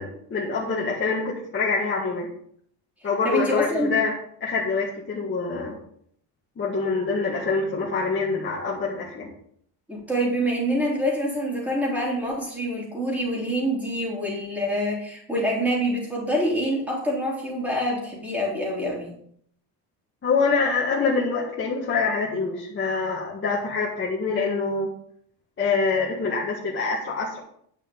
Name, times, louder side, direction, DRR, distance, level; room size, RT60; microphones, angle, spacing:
voice 1, 0.0-2.3 3.0-4.1 4.4-5.8 6.6-9.3 20.2-24.9 25.6-27.4, left 4 dB, 25° left, -6 dB, 1.9 m, -25 dB
voice 2, 3.2-3.9 9.9-19.1, equal, 5° right, -3 dB, 3.4 m, -26 dB
10.0 x 5.7 x 7.0 m, 0.65 s
cardioid pair, 175°, 44 cm